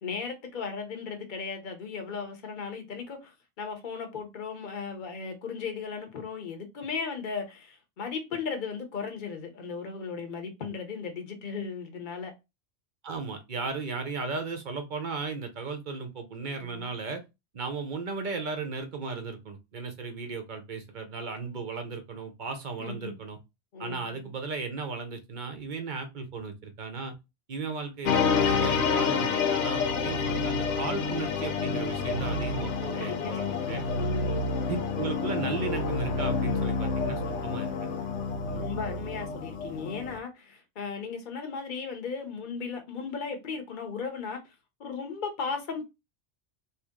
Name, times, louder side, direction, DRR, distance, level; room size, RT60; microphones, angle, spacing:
voice 1, 0.0-12.3 16.5-16.9 22.8-23.1 23.7-24.3 32.9-34.5 38.5-44.4 44.8-45.9, left 5 dB, 45° left, 0.9 m, -36 dB
voice 2, 13.0-17.2 17.5-23.4 23.8-27.1 27.5-33.9 34.7-38.0 38.5-38.7, right 4 dB, 50° right, 0.8 m, -35 dB
sound 1, 28.0-40.2, left 4 dB, 90° left, 0.9 m, -29 dB
3.0 x 2.8 x 3.6 m
omnidirectional pair, 1.2 m